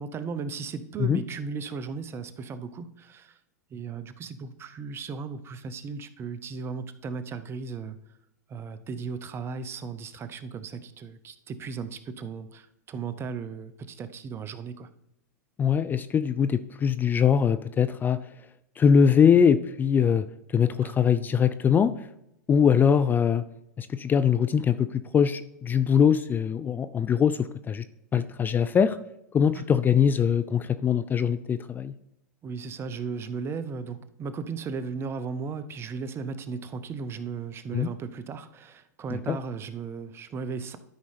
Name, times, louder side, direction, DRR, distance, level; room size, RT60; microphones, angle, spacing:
voice 1, 0.0-3.4 3.7-8.0 8.5-14.9 20.8-21.0 28.1-28.2 29.5-29.6 32.4-40.8, right 5 dB, 25° right, 12 dB, 0.7 m, -36 dB
voice 2, 15.6-18.2 18.8-20.3 20.5-21.9 22.5-23.4 23.8-27.8 28.1-29.0 29.3-31.9 37.7-37.9 39.1-39.4, left 7 dB, 20° left, 13 dB, 0.3 m, -22 dB
12.5 x 5.3 x 3.3 m, 0.82 s
hypercardioid pair, 100°, 9 cm